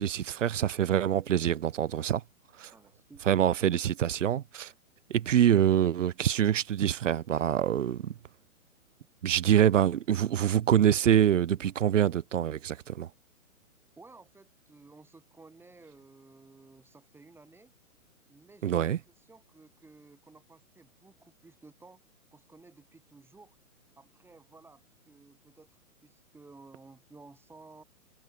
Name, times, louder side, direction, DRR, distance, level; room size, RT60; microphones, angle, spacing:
voice 1, 0.0-2.2 2.6-2.7 3.3-4.7 5.1-8.1 9.2-13.1 18.6-19.0, right 10 dB, 60° right, 1.7 m, -25 dB
voice 2, 2.7-3.2 14.0-17.7 18.3-22.0 22.3-23.6 24.0-27.8, right 3 dB, 5° right, 7.6 m, -55 dB
hypercardioid pair, 145°, 42 cm